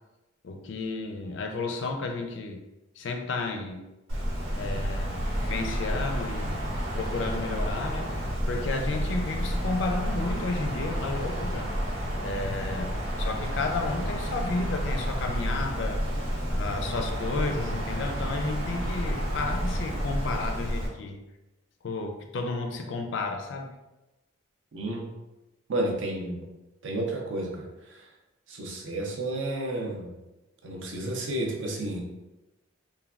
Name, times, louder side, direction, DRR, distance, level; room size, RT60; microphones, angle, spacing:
voice 1, 0.4-2.6 3.0-3.8 4.6-6.7 6.9-8.2 8.5-11.7 12.2-16.0 16.5-21.2 21.8-23.7, left 3 dB, 60° left, 4 dB, 0.4 m, -32 dB
Wind, 4.1-20.9, equal, 85° right, 1.0 m, -30 dB
voice 2, 24.7-25.1 25.7-26.5 26.8-28.1 28.5-30.1 30.6-32.0, right 1 dB, 65° right, 0 dB, 0.5 m, -31 dB
3.3 x 2.2 x 2.3 m, 1.0 s
head